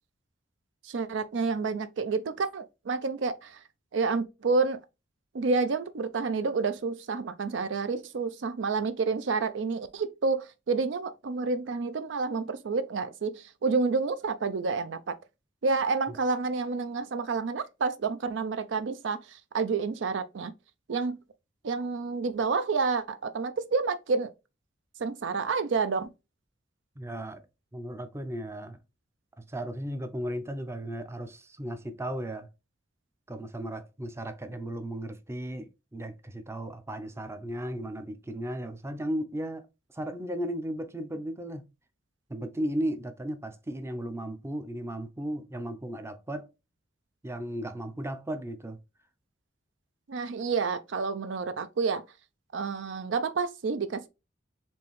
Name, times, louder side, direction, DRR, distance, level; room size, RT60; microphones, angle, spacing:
voice 1, 0.8-3.6 3.9-4.8 5.3-15.2 15.6-20.5 20.9-21.2 21.6-24.3 25.0-26.1 50.1-52.0 52.5-54.1, right 4 dB, 75° right, 0.5 m, -29 dB
voice 2, 27.0-27.4 27.7-28.8 29.5-32.5 33.3-39.7 39.9-41.6 42.3-46.5 47.2-48.8, right 1 dB, 15° right, 0.5 m, -35 dB
4.4 x 3.2 x 3.0 m
head